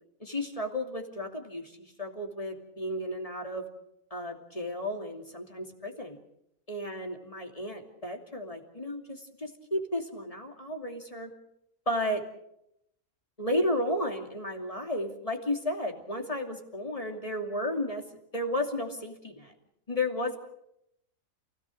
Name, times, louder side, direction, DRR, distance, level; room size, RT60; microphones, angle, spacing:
voice 1, 0.2-3.7 4.1-6.2 6.7-11.3 11.9-12.2 13.4-18.0 18.3-19.5 19.9-20.4, left 1 dB, 25° left, 3 dB, 2.8 m, -33 dB
28.5 x 17.5 x 6.5 m, 0.78 s
omnidirectional pair, 1.4 m